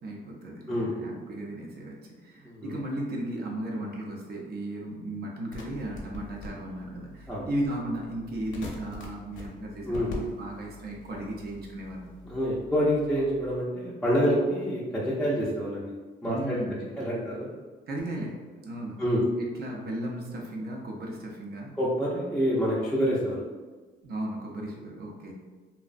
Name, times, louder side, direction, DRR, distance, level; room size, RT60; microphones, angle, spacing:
voice 1, 0.0-12.1 16.2-16.9 17.9-19.1 19.4-21.8 24.0-25.3, right 1 dB, 55° right, -1 dB, 0.6 m, -35 dB
voice 2, 2.4-2.7 7.3-7.5 9.8-10.1 12.3-15.9 16.2-17.5 19.0-19.2 21.8-23.4, equal, ahead, -8 dB, 0.4 m, -27 dB
sound 1, 5.5-13.6, left 1 dB, 75° left, 0.6 m, -44 dB
2.5 x 2.1 x 2.4 m, 1.3 s
cardioid pair, 90°, 20 cm